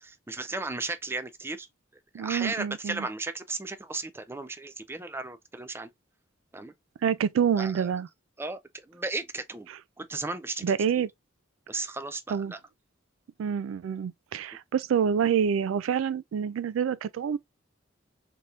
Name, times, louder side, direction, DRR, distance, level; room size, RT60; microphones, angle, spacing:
voice 1, 0.0-1.7 2.2-5.9 6.5-6.7 7.6-7.9 8.4-9.7 10.0-11.1 11.7-12.6, right 3 dB, 10° right, 0.4 m, -35 dB
voice 2, 2.1-3.1 7.0-8.1 9.7-9.8 10.6-11.1 12.3-12.5 13.4-17.4, right 7 dB, 80° right, 0.3 m, -27 dB
3.4 x 2.8 x 2.4 m
head